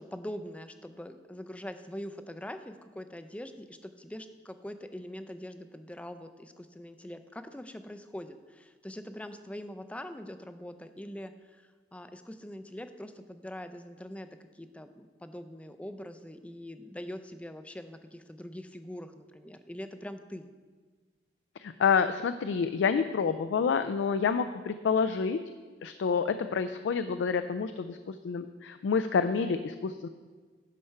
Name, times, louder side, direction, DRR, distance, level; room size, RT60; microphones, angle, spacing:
voice 1, 0.0-14.3 14.5-20.5, left 1 dB, 5° left, 9 dB, 0.4 m, -43 dB
voice 2, 21.6-25.4 25.8-30.1, left 6 dB, 85° left, 10 dB, 0.3 m, -28 dB
11.0 x 4.4 x 5.7 m, 1.4 s
head